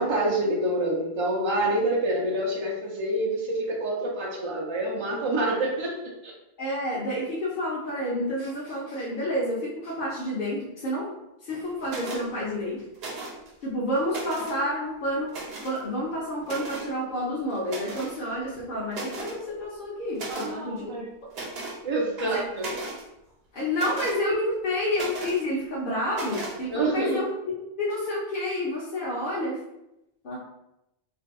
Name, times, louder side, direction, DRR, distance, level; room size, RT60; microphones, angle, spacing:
voice 1, 0.0-6.3 20.3-21.1 21.8-22.7 26.7-27.2, right 1 dB, 50° right, -3 dB, 0.3 m, -27 dB
voice 2, 6.6-11.1 11.4-12.8 13.6-15.3 15.6-21.1 22.3-22.4 23.5-27.3 27.8-29.6 30.2-30.4, left 1 dB, 60° left, -6 dB, 0.8 m, -29 dB
sound 1, 11.9-12.2 13.0-13.5 13.9-14.6 15.3-15.8 16.4-16.9 17.7-18.2 18.6-18.7 18.9-19.4 20.1-20.5 21.3-21.8 22.2-23.0 23.7-24.2 24.9-25.4 26.1-26.6, right 3 dB, 75° right, 1.0 m, -36 dB
2.7 x 2.2 x 3.4 m, 0.87 s
omnidirectional pair, 1.0 m